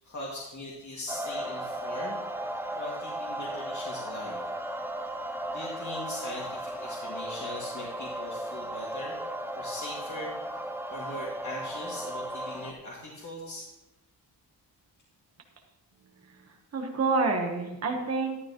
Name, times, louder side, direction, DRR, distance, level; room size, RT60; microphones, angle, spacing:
voice 1, 0.0-2.2 2.8-4.4 5.5-9.2 9.5-10.3 10.9-13.7, left 1 dB, 40° left, -5 dB, 2.1 m, -40 dB
sound 1, 1.1-12.7, right 1 dB, 5° right, 0.5 m, -36 dB
voice 2, 16.3-18.4, right 3 dB, 35° right, 2 dB, 1.2 m, -28 dB
12.5 x 12.0 x 3.0 m, 0.96 s
wide cardioid pair, 170°, 43 cm